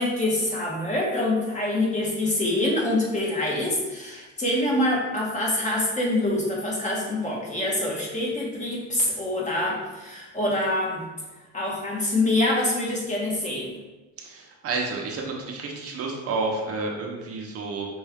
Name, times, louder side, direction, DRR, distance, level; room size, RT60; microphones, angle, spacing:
voice 1, 0.0-11.0 11.5-13.7, left 1 dB, 25° left, -3 dB, 1.3 m, -25 dB
voice 2, 14.2-17.9, right 3 dB, 55° right, 0 dB, 0.9 m, -30 dB
5.5 x 2.6 x 3.6 m, 1.1 s
cardioid pair, 115°, 29 cm